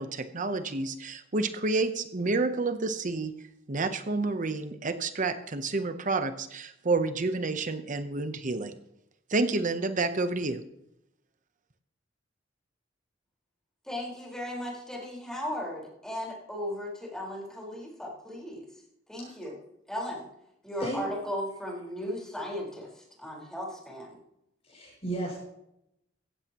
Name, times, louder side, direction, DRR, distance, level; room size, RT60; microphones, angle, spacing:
voice 1, 0.0-3.3 3.7-8.7 9.3-10.6, right 3 dB, 45° right, 10 dB, 0.8 m, -29 dB
voice 2, 13.9-18.6 19.1-19.5 19.9-20.3 20.6-24.2, left 1 dB, 5° left, -3 dB, 4.5 m, -36 dB
voice 3, 24.7-25.4, right 1 dB, 35° left, -4 dB, 6.1 m, -33 dB
16.0 x 14.5 x 3.0 m, 0.80 s
head